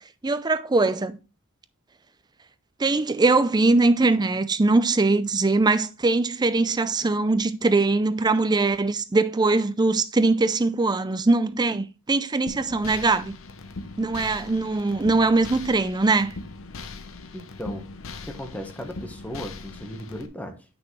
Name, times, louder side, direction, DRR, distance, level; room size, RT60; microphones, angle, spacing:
voice 1, 0.2-1.2 2.8-13.3 14.0-16.3, right 3 dB, 20° right, 0.5 m, -21 dB
sound 1, 12.5-20.3, left 3 dB, 65° left, 0.8 m, -40 dB
voice 2, 17.3-17.9 18.2-20.6, equal, 5° left, 1.2 m, -36 dB
8.1 x 6.1 x 3.1 m
head